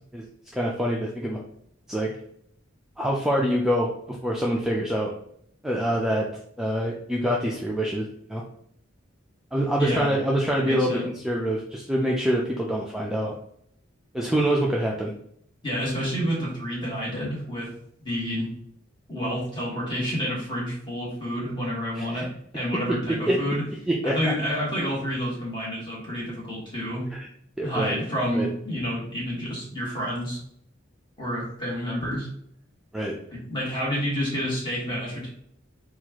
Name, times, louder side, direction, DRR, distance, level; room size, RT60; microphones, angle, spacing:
voice 1, 0.5-1.4 1.9-2.1 3.0-5.1 5.6-6.3 6.6-8.4 9.5-13.3 14.1-15.1 21.9-22.3 23.3-23.4 23.9-24.1 27.1-27.3 27.6-28.0 28.3-28.5 32.9-33.1, equal, 5° right, -3 dB, 0.3 m, -25 dB
voice 2, 9.8-10.1 10.6-11.0 15.6-17.7 18.0-18.5 19.1-23.6 24.0-27.1 27.6-30.4 31.2-32.3 33.3-35.3, equal, 25° left, -5 dB, 1.5 m, -29 dB
4.3 x 2.3 x 2.9 m, 0.67 s
head